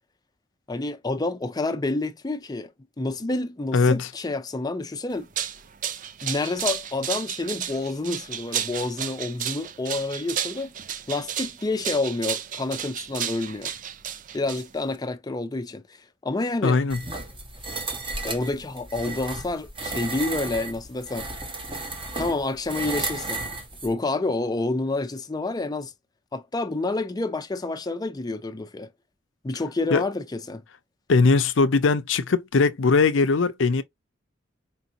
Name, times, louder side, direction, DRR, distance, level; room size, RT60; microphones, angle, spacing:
voice 1, 0.7-2.7 3.0-5.3 6.2-10.7 11.1-13.7 14.3-16.0 16.2-16.8 18.2-21.3 22.1-23.4 23.8-25.9 26.3-28.9 29.4-30.6, left 2 dB, 20° left, 0.5 m, -28 dB
voice 2, 3.7-4.1 16.6-17.0 29.9-30.0 31.1-33.8, left 4 dB, 80° left, 0.6 m, -20 dB
sound 1, 5.1-15.0, right 9 dB, 45° right, 0.4 m, -32 dB
sound 2, 16.9-23.9, right 2 dB, 25° right, 1.1 m, -33 dB
4.6 x 2.5 x 2.9 m
head